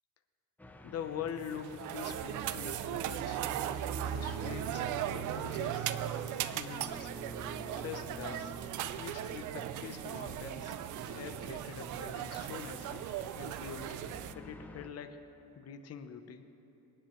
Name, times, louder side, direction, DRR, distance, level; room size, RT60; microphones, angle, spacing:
sound 1, 0.6-14.9, equal, 5° left, 0.6 m, -50 dB
voice 1, 0.8-3.5 4.0-5.9 6.5-7.1 7.5-8.5 9.0-13.1 13.3-14.0 14.3-15.2 15.6-16.4, left 7 dB, 40° left, 8 dB, 1.0 m, -44 dB
sound 2, 1.4-14.3, right 11 dB, 55° right, 0.5 m, -38 dB
sound 3, 6.5-6.6 7.0-7.2 7.4-7.5 7.9-8.1 8.3-8.4 8.8-9.0 9.2-9.3 9.7-9.9 10.1-10.2 10.6-10.8 11.0-11.1 11.5-12.0 12.4-12.6 12.8-12.9, right 7 dB, 40° right, 0.9 m, -53 dB
28.0 x 9.9 x 3.2 m, 3.0 s
cardioid pair, 140°, 37 cm